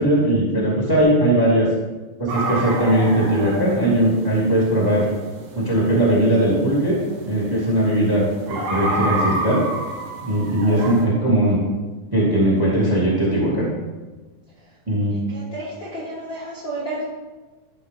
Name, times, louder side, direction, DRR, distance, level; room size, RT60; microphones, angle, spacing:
voice 1, 0.0-1.7 2.2-5.1 5.5-7.0 7.3-9.6 10.2-11.6 12.1-13.7 14.9-15.1, right 1 dB, 10° right, -5 dB, 1.9 m, -19 dB
sound 1, 2.3-11.0, right 2 dB, 70° right, 2.8 m, -30 dB
voice 2, 15.3-17.0, right 1 dB, 45° left, -7 dB, 1.7 m, -31 dB
13.0 x 5.6 x 3.7 m, 1.2 s
omnidirectional pair, 4.1 m